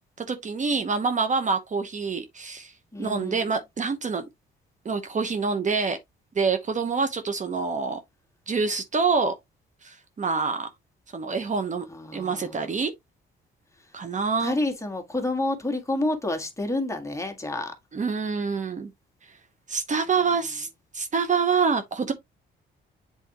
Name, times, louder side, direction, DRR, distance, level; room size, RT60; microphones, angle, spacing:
voice 1, 0.3-2.7 3.0-4.3 4.8-6.0 6.3-8.0 8.5-9.3 9.8-10.7 11.1-11.8 12.1-12.9 13.9-14.6 17.9-18.9 19.7-20.7 20.9-22.1, right 5 dB, 40° right, 1.0 m, -26 dB
voice 2, 2.9-3.5 11.9-12.7 14.4-17.7, left 2 dB, 15° left, 1.9 m, -29 dB
8.1 x 4.3 x 3.0 m
cardioid pair, 90°, 20 cm